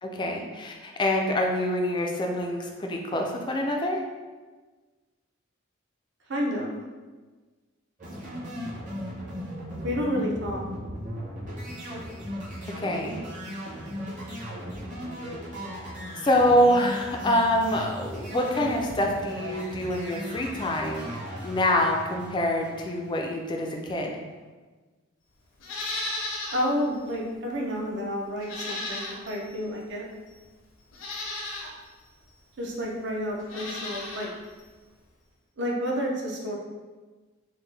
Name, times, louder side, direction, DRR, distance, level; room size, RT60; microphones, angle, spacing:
voice 1, 0.0-4.0 12.8-13.2 16.2-21.1 21.4-24.2, left 1 dB, 25° left, 1 dB, 0.3 m, -25 dB
voice 2, 6.3-6.7 9.8-10.6 26.5-30.0 32.6-34.3 35.6-36.5, equal, 60° right, -1 dB, 0.6 m, -30 dB
sound 1, 8.0-23.4, equal, 40° right, 1.0 m, -37 dB
Livestock farm animals working animals, 25.6-26.7 27.1-27.2 28.4-29.5 30.3-30.4 30.9-31.7 33.4-34.3 34.6-34.7, left 2 dB, 70° left, 0.6 m, -34 dB
3.6 x 2.1 x 3.2 m, 1.3 s
head